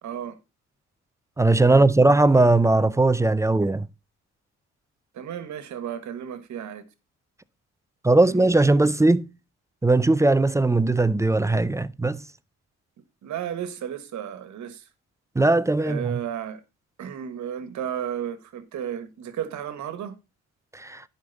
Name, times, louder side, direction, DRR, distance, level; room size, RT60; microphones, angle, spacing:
voice 1, 0.0-0.4 1.7-1.9 5.1-6.8 8.2-8.5 13.2-14.9 15.8-16.6 17.0-20.1, right 9 dB, 70° right, 1.4 m, -33 dB
voice 2, 1.4-3.9 8.0-9.3 9.8-12.2 15.4-16.2 20.7-21.0, right 2 dB, 10° right, 0.4 m, -19 dB
10.5 x 5.2 x 4.0 m
cardioid pair, 90°, 30 cm